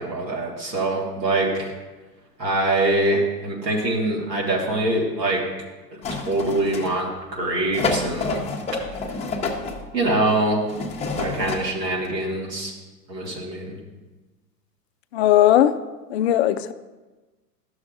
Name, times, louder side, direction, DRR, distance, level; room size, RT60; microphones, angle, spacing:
voice 1, 0.0-1.7 2.4-5.4 6.1-8.4 9.9-10.6 11.2-12.7 13.1-13.8, right 2 dB, 85° right, -3 dB, 2.0 m, -24 dB
sound 1, 6.0-7.2 7.7-9.8 10.7-11.7 12.0-12.1, left 3 dB, 15° left, 0.8 m, -28 dB
voice 2, 15.1-15.7 16.1-16.7, left 12 dB, 45° left, 11 dB, 0.5 m, -17 dB
12.5 x 6.3 x 2.5 m, 1.2 s
figure-of-eight pair, 100°, 48 cm